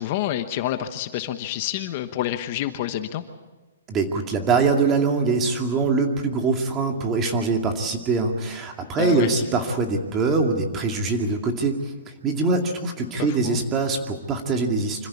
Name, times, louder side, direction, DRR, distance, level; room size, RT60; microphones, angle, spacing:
voice 1, 0.0-3.2 9.0-9.3 13.3-13.6, left 12 dB, 35° left, 9 dB, 1.1 m, -28 dB
voice 2, 3.9-15.1, right 4 dB, 20° right, 4 dB, 2.3 m, -23 dB
26.0 x 15.5 x 8.5 m, 1.2 s
hypercardioid pair, 165°, 0 cm